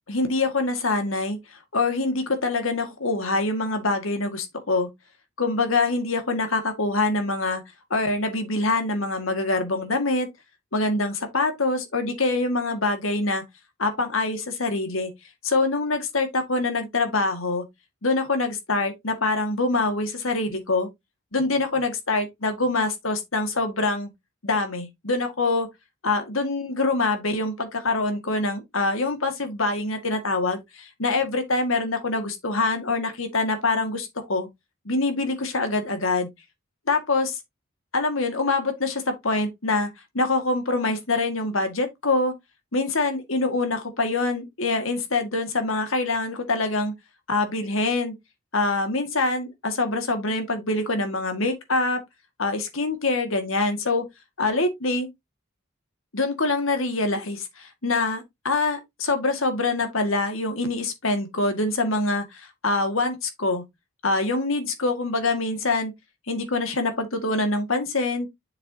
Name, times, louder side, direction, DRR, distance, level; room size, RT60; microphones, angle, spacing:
voice 1, 0.1-1.4 1.7-4.9 5.4-7.6 7.9-10.3 10.7-13.4 13.8-15.1 15.4-17.6 18.0-20.9 21.3-24.1 24.4-25.7 26.0-34.5 34.9-36.3 36.9-37.4 37.9-39.9 40.1-42.3 42.7-46.9 47.3-48.1 48.5-52.0 52.4-54.1 54.4-55.1 56.1-63.6 64.0-65.9 66.3-68.3, left 3 dB, 75° left, 2.1 m, -25 dB
7.4 x 6.9 x 2.8 m
head